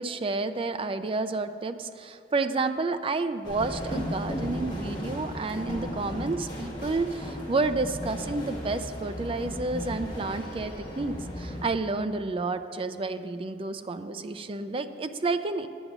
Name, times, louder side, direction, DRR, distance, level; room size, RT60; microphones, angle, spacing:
voice 1, 0.0-15.7, right 3 dB, 30° right, 10 dB, 0.4 m, -30 dB
sound 1, 3.4-11.6, equal, 25° left, 2.1 m, -36 dB
10.5 x 8.0 x 6.0 m, 2.6 s
head